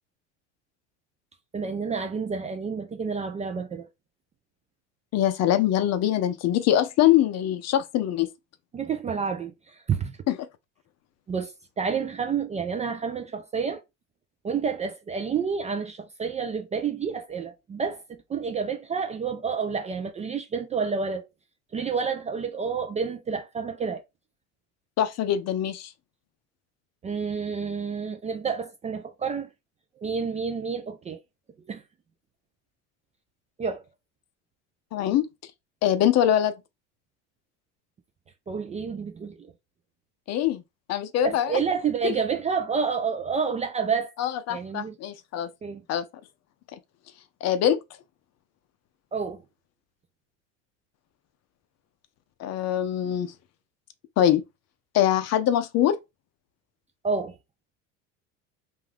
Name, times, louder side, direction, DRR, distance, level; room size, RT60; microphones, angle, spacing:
voice 1, 1.5-3.9 8.7-10.2 11.3-11.5 11.8-13.8 14.4-21.2 21.7-24.0 27.0-29.5 30.0-31.2 31.7-31.8 33.6-33.8 38.5-39.5 41.2-44.1 44.5-44.9 45.6-45.8 49.1-49.4 57.0-57.4, right 5 dB, 20° right, 0.3 m, -29 dB
voice 2, 5.1-8.3 10.3-10.4 25.0-25.9 34.9-35.2 35.8-36.5 40.3-40.6 40.9-41.6 42.0-42.1 44.2-45.5 45.9-46.0 47.4-47.8 52.4-53.3 54.2-54.4 54.9-56.0, left 11 dB, 45° left, 0.5 m, -23 dB
2.6 x 2.3 x 3.2 m
supercardioid pair, 90°, 36 cm